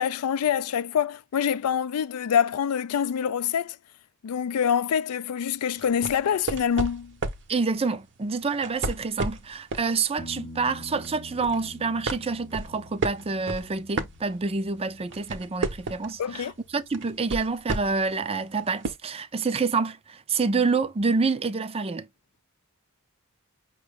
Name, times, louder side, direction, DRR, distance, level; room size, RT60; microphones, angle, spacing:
voice 1, 0.0-3.8 4.2-7.2 16.2-16.5, left 8 dB, 75° left, 0.4 m, -25 dB
sound 1, 5.8-7.5 8.5-9.9 10.3-10.6 11.0-11.7 12.1-14.7 15.0-16.2 16.9-18.1 18.8-18.9, right 3 dB, 55° right, 0.8 m, -32 dB
voice 2, 7.5-22.1, right 4 dB, 25° right, 0.5 m, -27 dB
sound 2, 10.2-17.8 20.8-20.9, left 1 dB, 15° left, 0.7 m, -47 dB
5.5 x 2.2 x 3.4 m
head